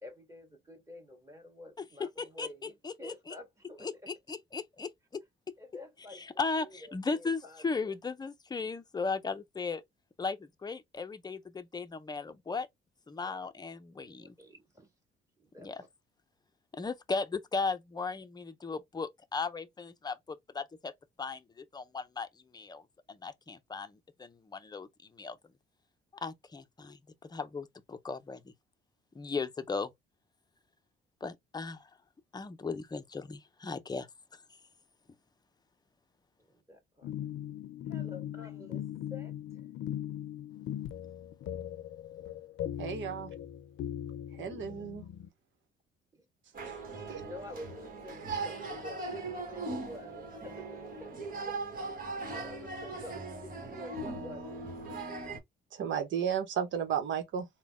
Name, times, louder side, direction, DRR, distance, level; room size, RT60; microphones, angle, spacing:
voice 1, 0.0-4.1 5.6-7.9 13.2-13.5 14.0-14.9 15.4-15.9 36.4-37.1 37.9-39.7 44.5-44.9 46.1-46.2 47.1-50.7 51.0-54.6, left 1 dB, 15° right, 2.1 m, -49 dB
voice 2, 2.2-2.5 2.8-3.3 3.8-4.9 6.4-9.8 10.2-12.7 13.1-14.3 15.6-15.8 16.7-20.9 21.2-22.3 22.5-22.8 23.1-24.9 25.2-25.4 26.2-28.5 29.1-29.9 31.2-31.9 32.3-34.1, left 4 dB, 20° left, 0.6 m, -37 dB
sound 1, 37.0-45.3, left 11 dB, 75° left, 0.5 m, -39 dB
voice 3, 42.8-43.3 44.4-45.0 47.1-47.2 55.7-57.5, right 8 dB, 70° right, 1.0 m, -33 dB
sound 2, 46.5-55.4, right 3 dB, 45° right, 1.4 m, -39 dB
3.8 x 2.2 x 3.5 m
cardioid pair, 90°, 20 cm